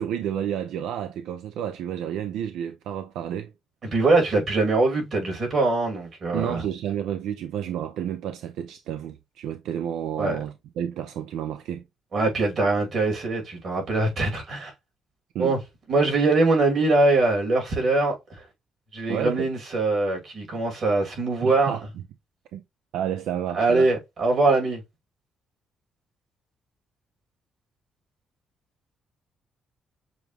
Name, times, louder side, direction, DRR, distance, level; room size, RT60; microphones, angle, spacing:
voice 1, 0.0-3.5 6.3-11.8 15.3-15.5 19.1-19.5 21.4-21.8 22.5-22.6 22.9-23.9, right 10 dB, 85° right, 0.5 m, -30 dB
voice 2, 3.8-6.6 10.2-10.4 12.1-14.7 15.4-15.6 15.9-18.4 18.9-21.8 23.5-24.8, right 3 dB, 50° right, 2.4 m, -22 dB
6.9 x 2.4 x 3.0 m
cardioid pair, 90°, 0 cm